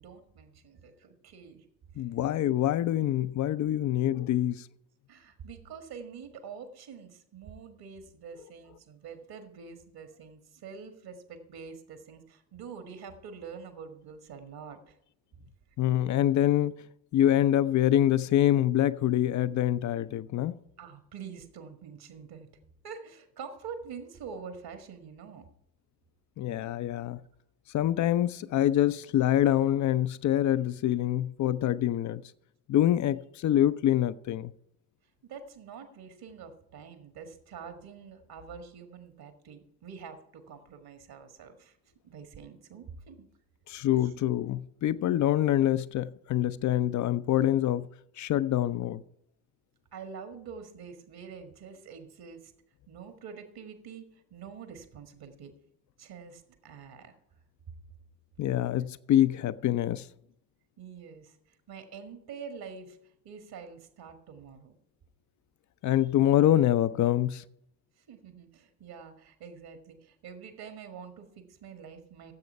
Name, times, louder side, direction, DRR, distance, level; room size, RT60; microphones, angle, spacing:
voice 1, 0.0-1.7 5.1-15.0 20.8-22.5 22.8-25.4 35.2-41.8 42.0-43.3 44.0-44.1 49.9-52.5 52.9-55.5 56.0-57.2 60.8-61.4 61.7-63.0 63.2-64.7 68.1-72.3, right 6 dB, 50° right, 1.8 m, -46 dB
voice 2, 2.0-4.6 15.8-16.7 17.1-20.6 26.4-27.2 27.7-32.2 32.7-34.5 43.7-47.9 48.2-49.0 58.4-60.1 65.8-67.4, left 12 dB, 40° left, 0.6 m, -25 dB
15.5 x 7.8 x 4.6 m
figure-of-eight pair, 45°, 47 cm